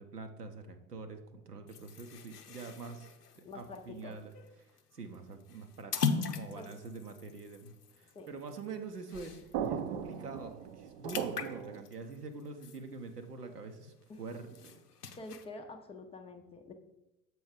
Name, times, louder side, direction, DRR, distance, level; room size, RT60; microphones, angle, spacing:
voice 1, 0.0-4.3 4.6-14.8, right 4 dB, 85° right, 6 dB, 0.8 m, -45 dB
sound 1, 1.7-9.7 10.1-10.2 10.5-13.5 13.9-15.5, left 6 dB, 85° left, 0.6 m, -40 dB
voice 2, 3.4-4.2 6.5-6.7 8.1-8.3 14.1-14.2 15.2-16.7, left 2 dB, 15° left, 5 dB, 0.5 m, -47 dB
sound 2, 9.1-11.8, right 8 dB, 45° right, 0.5 m, -38 dB
7.0 x 4.6 x 5.0 m, 0.96 s
figure-of-eight pair, 75°, 46 cm